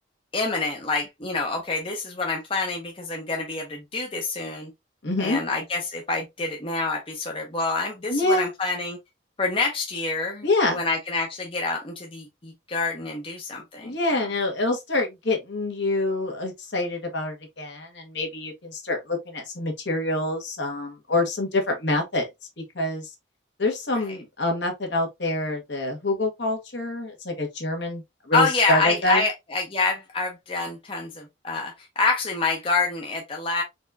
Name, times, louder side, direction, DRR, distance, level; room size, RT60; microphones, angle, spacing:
voice 1, 0.3-4.7 5.2-9.0 9.4-14.3 28.3-33.6, left 3 dB, 30° left, 0.7 m, -27 dB
voice 2, 5.0-5.4 8.1-8.5 10.4-10.8 13.8-22.3 22.7-23.1 23.6-29.3, left 2 dB, 65° left, 1.4 m, -26 dB
4.2 x 3.5 x 2.6 m
head